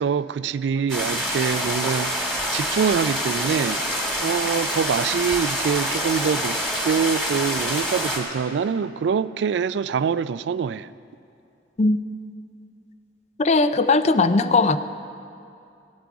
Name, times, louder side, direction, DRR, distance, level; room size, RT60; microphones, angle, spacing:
voice 1, 0.0-2.1 2.5-3.8 4.2-6.6 6.8-10.9, right 6 dB, 80° right, 0.3 m, -24 dB
sound 1, 0.9-8.2, equal, 5° left, 1.9 m, -26 dB
voice 2, 13.4-14.8, left 3 dB, 40° left, 0.5 m, -18 dB
16.5 x 11.5 x 4.7 m
head